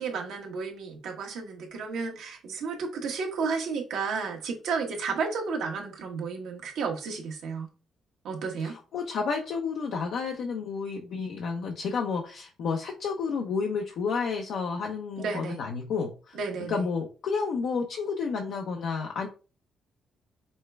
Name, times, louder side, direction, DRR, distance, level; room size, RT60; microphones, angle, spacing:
voice 1, 0.0-7.7 8.2-8.8 15.2-15.6 16.3-16.8, right 5 dB, 80° right, 1.1 m, -32 dB
voice 2, 8.6-16.4 16.7-19.3, left 5 dB, 75° left, 0.6 m, -31 dB
5.4 x 2.3 x 3.2 m
cardioid pair, 90°, 0 cm